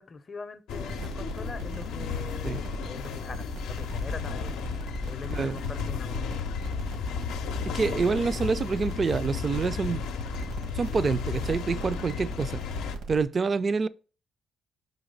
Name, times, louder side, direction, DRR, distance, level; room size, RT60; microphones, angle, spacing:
voice 1, 0.0-6.4, left 4 dB, 40° left, 0.5 m, -43 dB
sound 1, 0.7-13.0, left 6 dB, 90° left, 0.5 m, -34 dB
sound 2, 0.7-13.2, right 2 dB, 85° right, 1.3 m, -39 dB
voice 2, 7.7-10.0 10.7-12.6 13.1-13.9, right 4 dB, 40° right, 0.3 m, -27 dB
5.0 x 4.0 x 5.1 m
cardioid pair, 90°, 0 cm